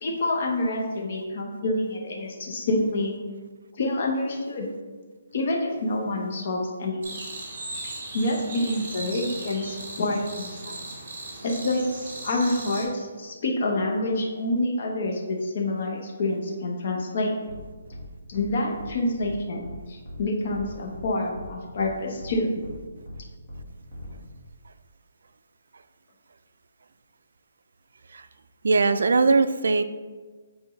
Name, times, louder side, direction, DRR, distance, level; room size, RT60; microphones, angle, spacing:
voice 1, 0.0-3.1 3.8-4.7 5.3-7.0 8.1-10.8 11.4-11.8 12.2-17.3 18.3-22.6, left 2 dB, 40° left, 0 dB, 0.9 m, -27 dB
sound 1, 7.0-12.8, right 2 dB, 40° right, 1.8 m, -38 dB
sound 2, 17.5-17.6 17.9-18.0 18.3-18.5 18.8-18.9 19.2-19.3 19.6-19.7 20.0-20.2 20.5-21.0 21.3-21.5 21.8-21.9 22.2-22.3 22.6-22.7 23.0-23.2 23.5-23.6 23.9-24.1, equal, 20° left, 1.5 m, -40 dB
voice 2, 28.6-29.8, right 3 dB, 70° right, 11 dB, 0.4 m, -20 dB
7.0 x 4.3 x 3.2 m, 1.4 s
hypercardioid pair, 175°, 0 cm